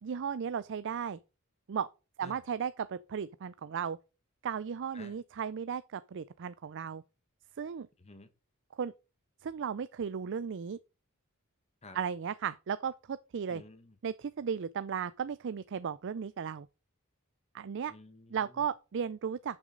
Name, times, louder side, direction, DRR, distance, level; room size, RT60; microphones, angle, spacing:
voice 1, 0.0-1.2 1.7-1.9 2.2-4.0 4.4-7.0 7.6-7.9 8.8-8.9 9.4-10.8 11.9-13.6 14.0-16.7 17.5-17.9 18.3-19.6, right 7 dB, 55° right, 0.4 m, -35 dB
voice 2, 8.0-8.3 11.8-12.0 13.5-14.0 17.9-18.7, left 2 dB, 30° left, 1.1 m, -52 dB
10.5 x 6.2 x 3.8 m
head